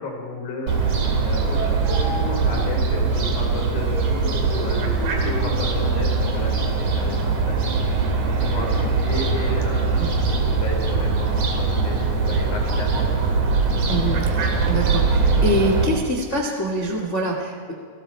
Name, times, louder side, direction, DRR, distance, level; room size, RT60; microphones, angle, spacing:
voice 1, 0.0-9.9 10.3-13.1, left 2 dB, 50° left, 0 dB, 5.3 m, -33 dB
Fowl, 0.7-15.9, right 4 dB, 45° right, 3.2 m, -21 dB
sound 1, 3.8-8.7, right 1 dB, 25° right, 6.2 m, -38 dB
voice 2, 13.9-17.7, right 1 dB, 75° left, 1 dB, 0.6 m, -25 dB
30.0 x 19.5 x 4.5 m, 2.1 s
omnidirectional pair, 5.8 m